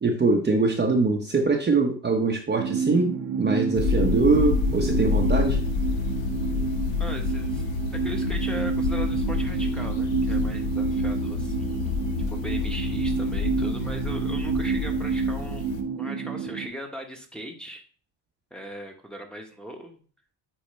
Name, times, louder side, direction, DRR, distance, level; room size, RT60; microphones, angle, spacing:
voice 1, 0.0-5.6, right 3 dB, 25° right, 1 dB, 0.9 m, -23 dB
sound 1, 2.6-16.7, right 5 dB, 45° right, 0.5 m, -29 dB
sound 2, 3.7-15.8, left 5 dB, 85° left, 1.1 m, -28 dB
voice 2, 7.0-7.6 7.9-12.0 12.3-15.6 16.0-17.8 18.5-20.0, right 1 dB, ahead, 1 dB, 1.1 m, -38 dB
8.6 x 2.9 x 4.3 m, 0.41 s
cardioid pair, 120°, 45 cm